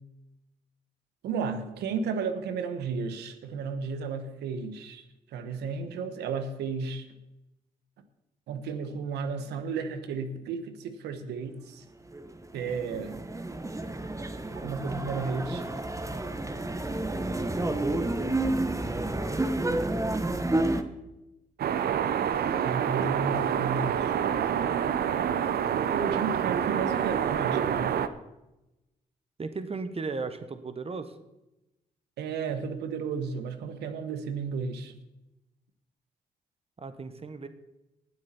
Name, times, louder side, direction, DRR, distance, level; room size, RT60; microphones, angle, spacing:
voice 1, 1.2-5.0 5.3-7.1 8.5-11.8 12.5-13.2 14.6-15.6 22.6-24.1 25.9-27.9 32.2-35.0, right 5 dB, 85° right, 9 dB, 1.2 m, -33 dB
sound 1, 12.1-20.8, right 2 dB, 20° right, 1.2 m, -30 dB
sound 2, 21.6-28.1, right 8 dB, 70° right, 0.7 m, -27 dB
voice 2, 29.4-31.1 36.8-37.5, right 4 dB, 35° right, 10 dB, 1.3 m, -35 dB
19.0 x 7.9 x 4.4 m, 0.96 s
supercardioid pair, 55°, 17 cm